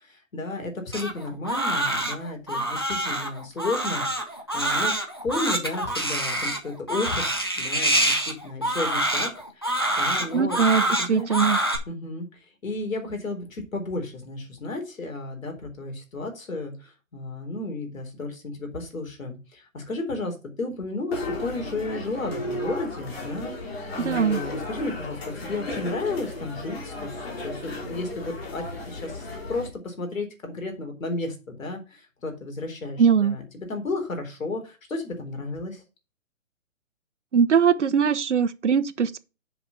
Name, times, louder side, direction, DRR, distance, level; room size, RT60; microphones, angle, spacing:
voice 1, 0.3-4.9 5.2-7.2 7.6-9.3 9.6-10.6 11.0-11.4 11.9-12.3 12.6-35.8, left 2 dB, 75° left, 3.9 m, -33 dB
Crying sobbing, 0.9-11.8, right 1 dB, 20° left, 0.6 m, -26 dB
voice 2, 10.3-11.6 24.0-24.4 33.0-33.4 37.3-39.2, right 6 dB, 60° right, 0.9 m, -21 dB
sound 1, 21.1-29.7, left 2 dB, 50° left, 3.3 m, -35 dB
8.0 x 5.4 x 5.6 m
hypercardioid pair, 175°, 40 cm